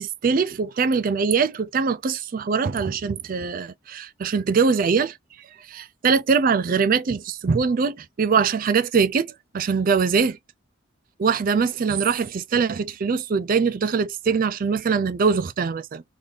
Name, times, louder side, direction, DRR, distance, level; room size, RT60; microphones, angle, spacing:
voice 1, 0.0-5.2 5.7-10.4 11.2-16.0, right 5 dB, 45° right, 0.4 m, -22 dB
3.4 x 2.6 x 3.8 m
head